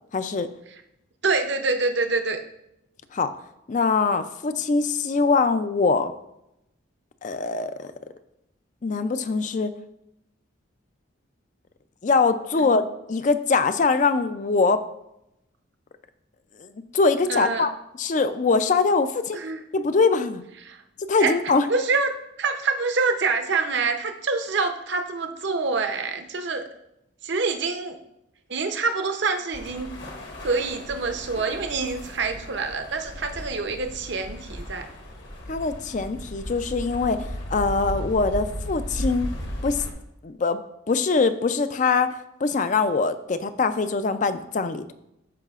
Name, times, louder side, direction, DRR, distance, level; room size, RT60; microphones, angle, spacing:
voice 1, 0.1-0.5 3.1-3.3 3.7-6.1 7.2-7.7 8.8-9.7 12.0-12.8 13.1-14.8 16.9-17.7 18.0-19.4 19.7-20.4 21.1-21.7 35.5-37.2 37.5-39.3 39.6-39.8 40.2-40.6 40.9-44.9, left 4 dB, 40° left, 11 dB, 0.4 m, -22 dB
voice 2, 1.2-2.4 12.6-12.9 17.3-17.7 19.3-19.6 20.6-20.8 21.2-21.3 21.7-26.6 27.2-28.0 28.5-29.9 30.4-34.9, right 4 dB, 60° right, 6 dB, 0.7 m, -26 dB
sound 1, 29.5-39.9, equal, 60° left, 1.3 m, -35 dB
13.5 x 4.9 x 2.4 m, 0.84 s
head